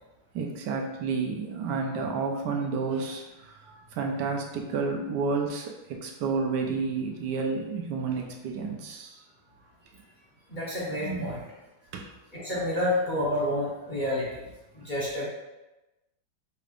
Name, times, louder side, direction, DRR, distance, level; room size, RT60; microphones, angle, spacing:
voice 1, 0.3-3.6 3.9-9.2 11.2-11.3 11.9-12.1, right 4 dB, 85° right, 2 dB, 1.3 m, -30 dB
voice 2, 10.5-11.4 12.3-14.4 14.7-15.3, left 1 dB, 35° left, -7 dB, 0.9 m, -29 dB
5.6 x 3.4 x 2.4 m, 1.0 s
omnidirectional pair, 1.8 m